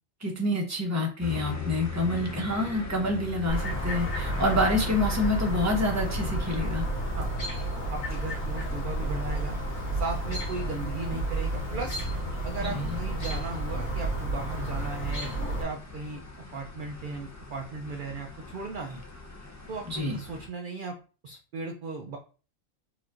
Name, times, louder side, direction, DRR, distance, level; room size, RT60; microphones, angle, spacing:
voice 1, 0.2-6.8 12.6-13.0 19.8-20.2, left 1 dB, 15° right, 0 dB, 0.9 m, -27 dB
sound 1, 1.2-20.5, left 4 dB, 20° left, 0.5 m, -42 dB
Chirp tweet, 3.5-15.6, right 1 dB, 75° left, 2.1 m, -31 dB
voice 2, 7.9-9.6 9.9-12.0 12.4-15.3 15.6-16.2 16.5-19.0 19.7-21.0 21.2-22.2, right 4 dB, 55° right, 2 dB, 0.6 m, -36 dB
4.6 x 4.3 x 2.5 m, 0.37 s
omnidirectional pair, 1.4 m